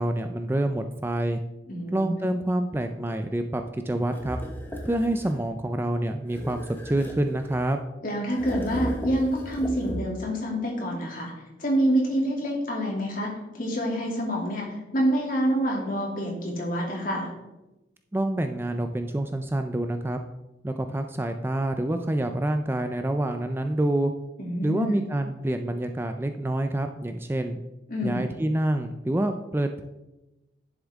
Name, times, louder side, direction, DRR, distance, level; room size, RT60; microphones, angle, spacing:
voice 1, 0.0-1.4 1.9-4.4 4.8-7.8 18.1-20.2 20.6-24.1 24.6-27.6 28.0-29.8, right 1 dB, 10° right, 7 dB, 0.4 m, -27 dB
voice 2, 1.7-2.1 8.0-11.3 11.6-13.3 13.5-17.3 24.4-25.0 27.9-28.2, equal, 50° left, -2 dB, 2.6 m, -27 dB
sound 1, 4.1-5.5 6.3-7.8 8.3-10.3, equal, 10° left, 1.0 m, -36 dB
10.5 x 7.3 x 3.5 m, 1.0 s
head